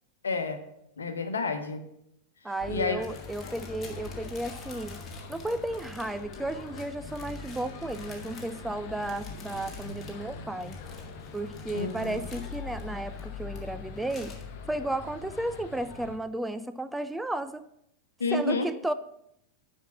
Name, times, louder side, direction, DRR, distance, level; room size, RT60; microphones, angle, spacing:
voice 1, 0.2-0.6 1.0-1.8 2.7-3.0 11.7-12.2 18.2-18.7, left 3 dB, 70° left, 8 dB, 1.0 m, -29 dB
voice 2, 2.4-5.0 5.3-10.8 11.3-14.3 14.7-17.7 18.3-18.9, right 1 dB, 5° right, 11 dB, 0.4 m, -33 dB
sound 1, 2.6-16.2, left 4 dB, 45° left, 1.0 m, -42 dB
sound 2, 3.0-13.6 13.9-14.4, left 4 dB, 20° left, 1.8 m, -51 dB
9.4 x 5.5 x 5.8 m, 0.77 s
figure-of-eight pair, 90°, 0 cm